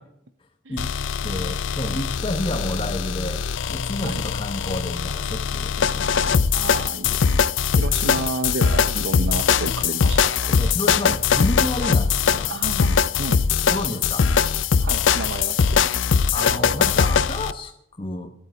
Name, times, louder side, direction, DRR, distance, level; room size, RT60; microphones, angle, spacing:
sound 1, 0.8-17.5, left 6 dB, 80° left, 0.5 m, -21 dB
voice 1, 1.2-3.4 3.7-6.4 10.5-12.6 13.7-14.3 16.3-18.3, left 1 dB, 25° left, 5 dB, 0.9 m, -30 dB
voice 2, 6.5-7.3 7.7-10.5 12.5-13.4 14.8-16.0, right 3 dB, 75° right, 9 dB, 0.7 m, -31 dB
14.0 x 9.3 x 8.0 m, 0.74 s
head